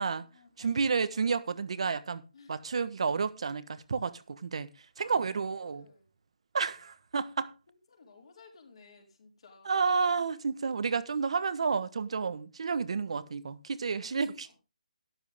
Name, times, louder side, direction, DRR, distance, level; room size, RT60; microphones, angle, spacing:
voice 1, 0.0-1.4 2.3-2.6 5.0-6.1 6.6-6.7 7.7-9.9 14.0-14.6, left 4 dB, 45° left, 4.7 m, -58 dB
voice 2, 0.6-2.2 2.5-4.7 5.0-5.8 6.5-7.5 9.6-14.5, right 5 dB, 50° right, 1.3 m, -30 dB
12.5 x 12.0 x 3.6 m
hypercardioid pair, 170°, 4 cm